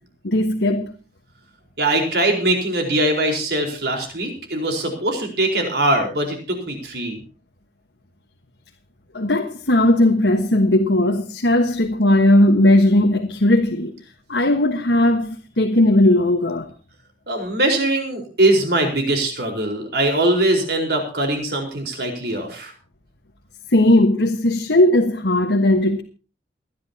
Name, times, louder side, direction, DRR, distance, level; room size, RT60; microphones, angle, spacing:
voice 1, 0.2-0.9 9.1-13.9 14.3-16.7 23.7-26.0, left 1 dB, 85° left, 1.4 m, -17 dB
voice 2, 1.8-7.2 17.3-22.7, right 1 dB, 65° right, 4.5 m, -21 dB
29.5 x 10.5 x 2.9 m
head